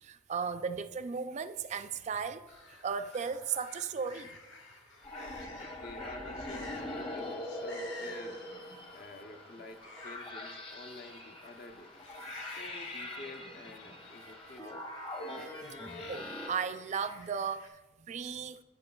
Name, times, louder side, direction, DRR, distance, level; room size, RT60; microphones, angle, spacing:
voice 1, 0.0-2.5 2.8-4.4 12.2-12.6 15.4-15.5 16.1-18.6, right 6 dB, 35° right, 0.3 m, -36 dB
sound 1, 2.5-17.7, left 2 dB, 75° left, 1.2 m, -53 dB
sound 2, 5.0-16.5, left 1 dB, 30° left, 0.9 m, -42 dB
voice 2, 5.1-8.4 8.9-12.0 12.4-14.9, left 2 dB, 50° left, 0.6 m, -50 dB
13.5 x 5.6 x 2.3 m
head